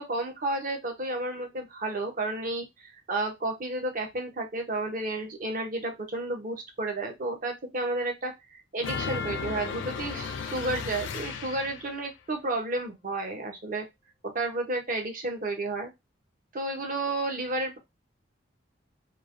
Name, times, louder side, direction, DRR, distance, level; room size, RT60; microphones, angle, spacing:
voice 1, 0.0-2.6 3.1-13.9 14.3-15.9 16.5-17.8, right 2 dB, 45° right, 3 dB, 0.7 m, -32 dB
sound 1, 8.8-12.0, left 5 dB, 80° left, 0.4 m, -34 dB
3.1 x 2.0 x 2.5 m, 0.20 s
head